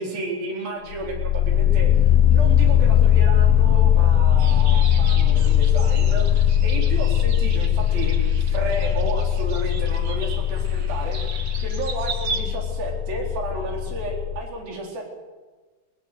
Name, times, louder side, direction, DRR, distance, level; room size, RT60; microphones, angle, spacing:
voice 1, 0.0-11.2 11.6-15.1, right 2 dB, 65° right, 0 dB, 5.6 m, -32 dB
sound 1, 0.9-14.4, left 10 dB, 65° left, 2.6 m, -19 dB
sound 2, 4.4-12.4, right 4 dB, 45° right, 1.8 m, -37 dB
20.5 x 20.5 x 6.7 m, 1.3 s
omnidirectional pair, 4.6 m